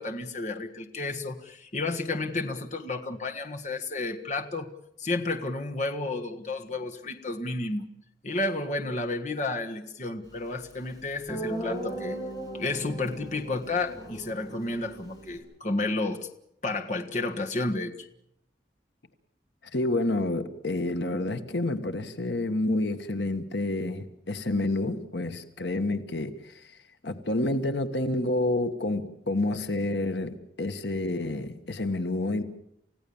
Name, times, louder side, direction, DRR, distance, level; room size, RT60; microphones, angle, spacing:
voice 1, 0.0-4.7 5.0-7.9 8.2-12.2 12.5-16.3 16.6-17.9, left 2 dB, 45° left, 1.6 m, -31 dB
Guitar, 10.7-10.8 11.3-15.4, right 1 dB, 20° left, 7.5 m, -37 dB
voice 2, 19.7-26.5 27.0-32.4, left 2 dB, 85° left, 1.5 m, -29 dB
29.0 x 16.0 x 7.2 m
head